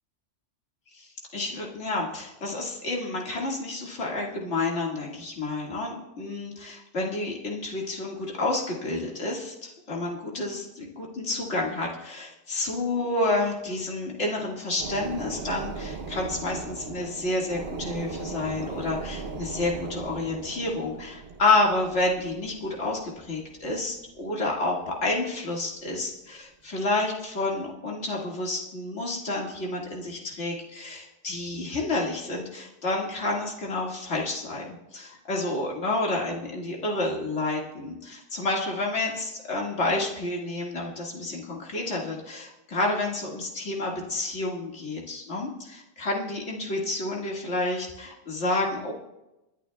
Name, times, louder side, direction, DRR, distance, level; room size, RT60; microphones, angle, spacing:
voice 1, 0.9-48.9, left 2 dB, 60° left, -2 dB, 2.3 m, -29 dB
sound 1, 14.8-24.8 25.2-25.3, right 4 dB, 55° right, 1.0 m, -38 dB
29.0 x 10.5 x 2.3 m, 0.95 s
omnidirectional pair, 1.3 m